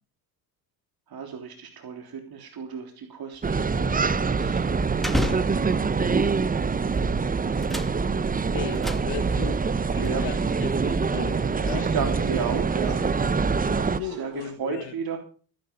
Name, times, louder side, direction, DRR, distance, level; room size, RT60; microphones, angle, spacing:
voice 1, 1.1-5.6 8.8-8.9 10.0-10.2 11.7-13.0 13.8-14.3 14.6-15.2, right 6 dB, 45° right, 3.5 m, -34 dB
sound 1, 3.3-6.1 6.8-7.2 7.4-9.6 10.0-10.1 10.8-12.3, left 1 dB, ahead, 2.1 m, -34 dB
sound 2, 3.4-14.0, right 4 dB, 15° right, 0.8 m, -25 dB
voice 2, 8.5-11.9 14.0-14.9, left 9 dB, 60° left, 2.2 m, -37 dB
sound 3, 9.2-14.5, right 10 dB, 85° right, 2.1 m, -44 dB
18.5 x 10.5 x 5.3 m
hypercardioid pair, 70°, 49 cm